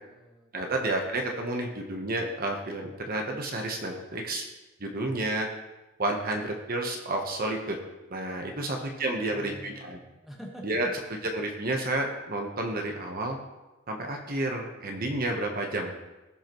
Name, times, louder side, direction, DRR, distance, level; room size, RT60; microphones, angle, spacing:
voice 1, 0.0-0.5 8.4-10.7, equal, ahead, -1 dB, 1.2 m, -47 dB
voice 2, 0.5-4.5 4.8-5.5 6.0-7.8 8.1-10.0 10.6-10.9 11.3-13.4 13.9-15.9, right 2 dB, 45° right, 2 dB, 1.0 m, -30 dB
16.5 x 5.6 x 3.0 m, 1.1 s
head